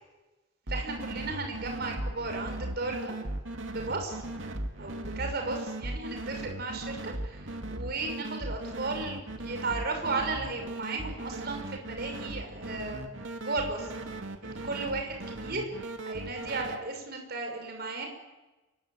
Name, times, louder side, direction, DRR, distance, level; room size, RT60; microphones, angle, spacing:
voice 1, 0.7-3.2 3.7-4.2 4.8-13.9 14.4-18.1, right 3 dB, 50° right, 3 dB, 6.1 m, -35 dB
sound 1, 0.7-16.8, right 1 dB, 70° right, 2.5 m, -38 dB
28.5 x 23.5 x 8.9 m, 1.1 s
head